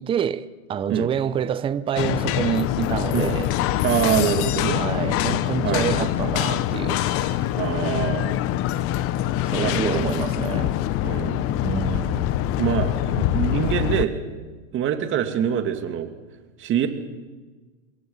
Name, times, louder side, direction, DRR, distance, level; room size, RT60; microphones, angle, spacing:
voice 1, 0.0-3.5 4.7-7.5 9.4-10.7 11.6-12.4, right 8 dB, 15° right, 0.6 m, -27 dB
sound 1, 2.0-14.0, left 13 dB, 35° left, 1.1 m, -24 dB
voice 2, 3.8-4.8 5.6-6.1 7.6-8.4 9.6-10.1 11.0-11.6 12.5-14.2 14.7-16.1 16.6-16.9, right 9 dB, 30° right, 2.7 m, -25 dB
26.5 x 22.0 x 5.6 m
hypercardioid pair, 125°, 40 cm